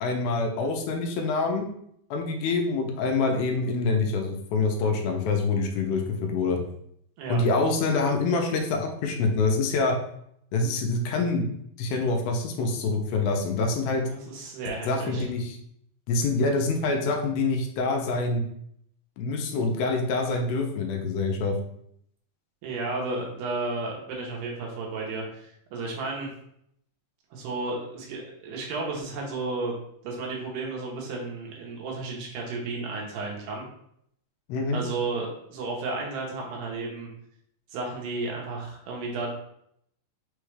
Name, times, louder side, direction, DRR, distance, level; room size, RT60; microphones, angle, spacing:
voice 1, 0.0-1.7 2.1-6.6 7.3-10.0 10.5-11.5 11.8-14.1 14.9-15.6 16.1-18.4 19.2-21.6 34.5-34.8, left 3 dB, 85° left, 3 dB, 2.5 m, -26 dB
voice 2, 14.3-15.3 22.6-26.3 27.3-29.7 30.0-33.6 34.7-37.1 37.7-39.3, right 3 dB, 75° right, -2 dB, 2.6 m, -33 dB
6.1 x 2.3 x 3.2 m, 0.71 s
omnidirectional pair, 4.2 m